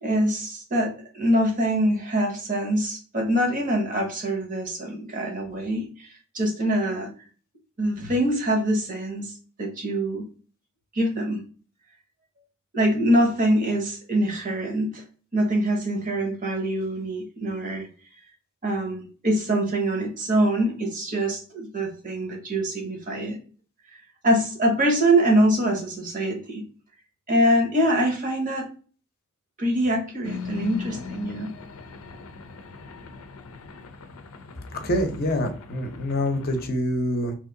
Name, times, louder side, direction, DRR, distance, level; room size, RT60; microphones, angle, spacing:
voice 1, 0.0-6.1 6.3-7.1 7.8-10.3 10.9-11.4 12.7-15.0 15.3-17.9 18.6-23.4 23.9-26.6 27.3-28.7 29.6-31.5, right 1 dB, 40° right, 2 dB, 0.9 m, -24 dB
sound 1, 30.2-36.7, left 4 dB, 85° left, 0.5 m, -40 dB
voice 2, 34.8-37.3, equal, 45° left, 5 dB, 0.6 m, -26 dB
2.9 x 2.7 x 3.7 m, 0.40 s
head